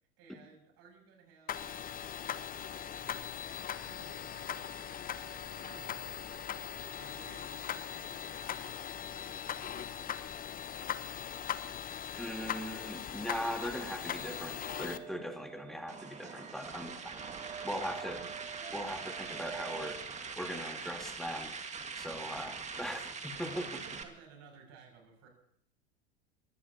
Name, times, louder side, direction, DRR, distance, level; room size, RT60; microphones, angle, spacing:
voice 1, 0.2-1.9 2.5-3.5 3.8-6.5 7.0-10.8 16.9-17.6 18.2-18.3 22.2-22.4 23.4-25.3, right 5 dB, 50° right, 2 dB, 7.2 m, -58 dB
sound 1, 1.5-15.0, left 9 dB, 25° left, 0.9 m, -40 dB
voice 2, 12.2-16.9 17.6-18.4 18.7-20.1 20.4-21.5 21.9-23.7, equal, ahead, 5 dB, 2.0 m, -40 dB
sound 2, 13.5-20.0, right 8 dB, 90° right, 2.1 m, -48 dB
sound 3, 15.9-24.0, right 5 dB, 20° right, 1.9 m, -43 dB
22.5 x 16.5 x 2.9 m, 0.63 s
hypercardioid pair, 90°, 32 cm